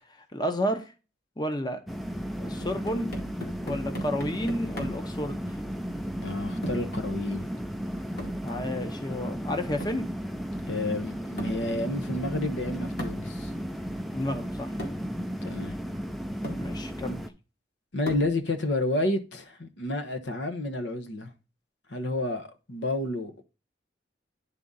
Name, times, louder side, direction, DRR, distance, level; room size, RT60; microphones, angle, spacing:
voice 1, 0.3-0.9 1.4-1.8 2.4-3.1 3.6-5.4 8.4-10.1 14.1-14.7 16.6-17.2, equal, 20° left, 0.8 m, -31 dB
sound 1, 1.9-17.3, equal, ahead, 0.4 m, -34 dB
sound 2, 2.6-5.1 6.6-7.0 8.2-8.5 9.8-10.1 11.4-11.7 13.0-13.3 14.3-14.4 14.8-15.1 15.9-16.0 16.4-16.7 18.1-18.4, equal, 55° left, 2.2 m, -39 dB
voice 2, 6.2-7.4 10.7-13.5 15.4-15.8 17.9-21.3 21.9-23.3, left 1 dB, 75° left, 1.0 m, -30 dB
9.9 x 3.7 x 3.9 m
head